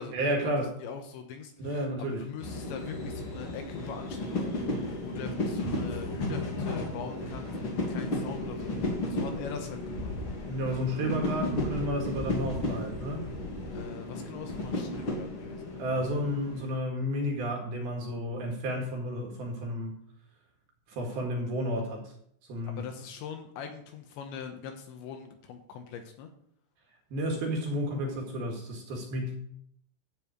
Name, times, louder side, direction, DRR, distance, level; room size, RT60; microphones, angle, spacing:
voice 1, 0.1-0.7 1.6-2.3 10.4-13.3 15.8-20.0 20.9-22.1 22.5-22.8 27.1-29.3, equal, 60° right, 1 dB, 3.1 m, -32 dB
voice 2, 0.8-10.1 13.7-15.7 22.6-26.3, left 6 dB, 75° left, 5 dB, 3.0 m, -42 dB
sound 1, 2.4-16.8, left 1 dB, 35° left, 2.3 m, -34 dB
12.5 x 5.6 x 8.6 m, 0.70 s
omnidirectional pair, 5.9 m